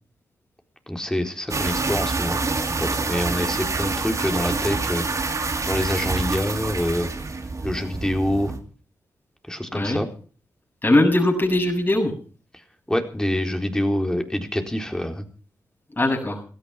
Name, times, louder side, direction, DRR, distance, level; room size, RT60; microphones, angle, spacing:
voice 1, 0.9-2.4 2.8-7.1 7.6-8.5 9.4-10.1 12.5-15.3, left 1 dB, 10° left, 4 dB, 4.0 m, -26 dB
sound 1, 1.5-8.6, right 3 dB, 50° right, 3.0 m, -27 dB
voice 2, 10.8-12.1 16.0-16.4, left 1 dB, 30° left, -1 dB, 7.9 m, -20 dB
17.0 x 13.5 x 5.9 m, 0.41 s
supercardioid pair, 45°, 7 cm